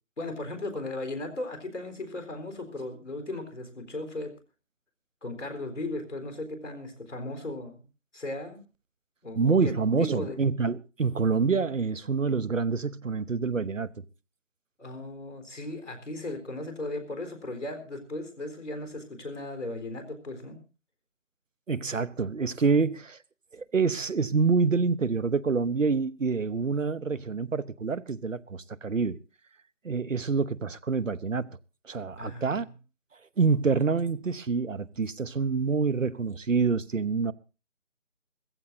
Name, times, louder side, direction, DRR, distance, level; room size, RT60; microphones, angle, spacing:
voice 1, 0.2-4.3 5.2-7.8 8.1-8.6 9.2-9.7 10.0-10.4 14.8-20.6 32.2-32.6, left 2 dB, 70° left, 4.1 m, -36 dB
voice 2, 9.4-13.9 21.7-23.2 23.5-29.2 29.8-31.5 31.8-32.7 33.4-37.3, right 5 dB, 80° right, 1.0 m, -27 dB
16.0 x 15.0 x 4.0 m
figure-of-eight pair, 180°, 38 cm